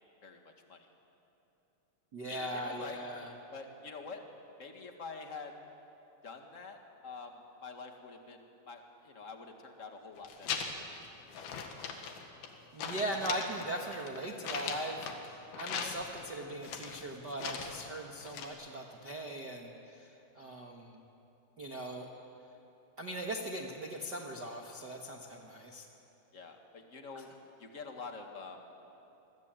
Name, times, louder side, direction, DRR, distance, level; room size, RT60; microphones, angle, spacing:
voice 1, 0.2-0.8 2.3-3.0 3.5-4.2 4.6-5.5 6.2-10.9 11.3-11.6 26.3-27.3 27.6-28.7, left 4 dB, 35° left, 4 dB, 1.2 m, -47 dB
voice 2, 2.1-3.3 12.7-21.0 21.6-22.1 23.0-25.9 27.1-27.2, right 1 dB, 50° right, 0 dB, 1.3 m, -40 dB
sound 1, 10.2-11.0 11.3-12.5 12.8-15.3 15.5-16.3 16.6-17.9 18.2-18.5, left 6 dB, 85° left, 3.8 m, -39 dB
26.5 x 22.0 x 9.0 m, 2.9 s
omnidirectional pair, 4.3 m